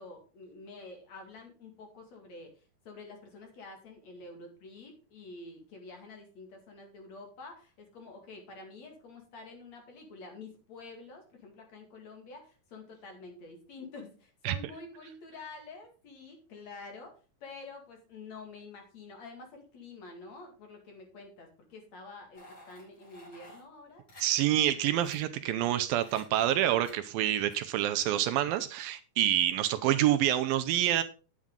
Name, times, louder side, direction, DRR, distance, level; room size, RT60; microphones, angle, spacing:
voice 1, 0.0-17.2 17.4-24.0, left 3 dB, 50° left, 3.1 m, -48 dB
sound 1, 22.3-23.6 24.1-24.2 24.7-24.8 25.0-25.2 26.0-26.2 26.8-27.0 27.5-27.6, left 1 dB, 30° left, 4.4 m, -52 dB
voice 2, 24.2-31.0, right 12 dB, 80° right, 2.4 m, -27 dB
9.6 x 8.9 x 3.7 m
omnidirectional pair, 4.4 m